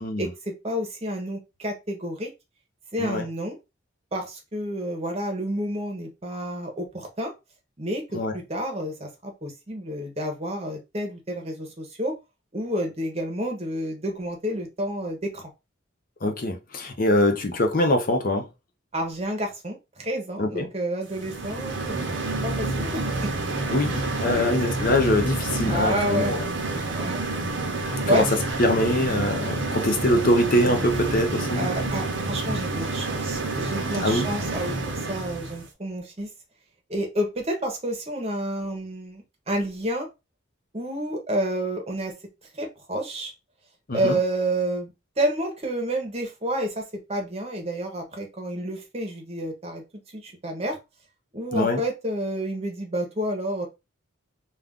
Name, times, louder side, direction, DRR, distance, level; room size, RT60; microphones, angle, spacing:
voice 1, 0.2-2.3 2.9-3.6 4.1-7.3 7.8-12.1 12.5-15.4 18.9-23.3 24.3-24.5 25.6-26.3 26.9-27.2 28.1-28.3 31.6-36.3 36.9-40.1 40.7-42.1 42.5-43.3 43.9-49.8 50.1-50.8 51.3-53.7, right 1 dB, 30° right, 0.8 m, -29 dB
voice 2, 16.2-18.5 20.4-20.7 23.7-26.5 27.9-28.2 28.6-31.7 34.0-34.3 43.9-44.2 51.5-51.8, left 1 dB, 45° left, 0.6 m, -23 dB
sound 1, 21.1-35.6, right 2 dB, 65° right, 0.7 m, -28 dB
2.4 x 2.4 x 3.4 m
head